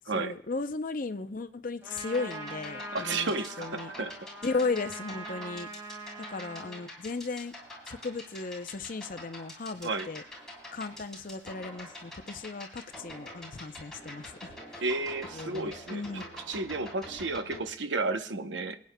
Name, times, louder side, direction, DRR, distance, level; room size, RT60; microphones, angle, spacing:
voice 1, 0.1-3.3 3.6-3.9 4.4-5.7 6.3-7.5 7.9-10.2 10.7-14.8 15.3-16.3, left 3 dB, 45° left, 9 dB, 0.6 m, -35 dB
Trumpet, 1.8-6.8, right 1 dB, 10° right, 4.6 m, -43 dB
sound 1, 1.9-17.7, equal, 5° left, 3.5 m, -46 dB
voice 2, 2.9-4.1 9.8-10.1 14.8-18.8, right 3 dB, 80° right, 8 dB, 0.8 m, -32 dB
27.5 x 9.3 x 2.2 m, 0.64 s
head